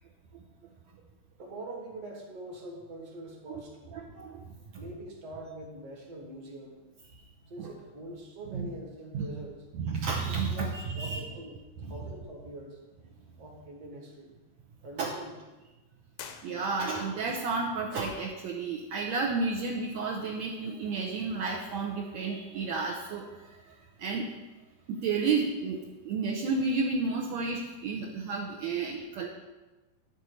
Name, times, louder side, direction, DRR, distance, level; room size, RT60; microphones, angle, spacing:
voice 1, 1.4-4.0 4.8-6.8 7.5-9.5 10.5-12.8 13.4-14.3 14.8-15.3, right 1 dB, 55° right, -1 dB, 2.3 m, -44 dB
voice 2, 3.9-4.4 7.6-7.7 8.5-8.7 9.1-9.3 9.7-11.3 11.8-11.9 15.0-15.1 16.4-24.3 24.9-29.3, right 4 dB, 70° right, -2 dB, 1.8 m, -32 dB
sound 1, 16.1-17.2, left 8 dB, 75° left, 2.0 m, -47 dB
11.5 x 4.1 x 6.3 m, 1.1 s
omnidirectional pair, 3.8 m